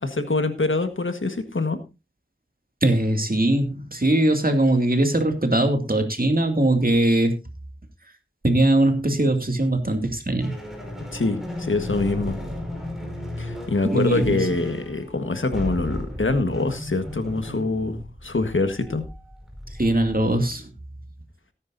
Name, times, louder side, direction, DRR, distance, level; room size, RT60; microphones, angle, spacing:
voice 1, 0.0-1.8 11.1-12.3 13.4-19.0, left 3 dB, 85° left, 1.5 m, -25 dB
voice 2, 2.8-7.3 8.4-10.5 13.8-14.5 19.8-20.7, right 1 dB, 50° right, 2.5 m, -21 dB
sound 1, 10.4-20.5, left 1 dB, ahead, 5.4 m, -35 dB
18.0 x 9.9 x 2.7 m
wide cardioid pair, 45°, 20 cm